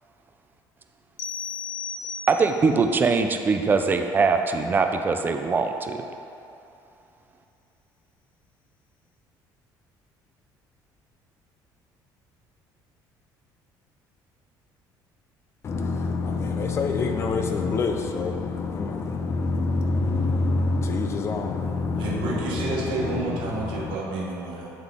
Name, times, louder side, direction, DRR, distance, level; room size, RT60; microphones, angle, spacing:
sound 1, 1.2-2.7, left 6 dB, 90° left, 0.6 m, -34 dB
voice 1, 2.3-6.0, right 4 dB, 25° right, 6 dB, 0.3 m, -22 dB
voice 2, 15.6-22.6 23.0-23.2 23.5-23.9, left 3 dB, 35° left, 4 dB, 0.5 m, -26 dB
voice 3, 22.0-24.7, right 3 dB, 80° right, -3 dB, 1.1 m, -30 dB
8.0 x 3.8 x 3.6 m, 2.7 s
cardioid pair, 140°, 8 cm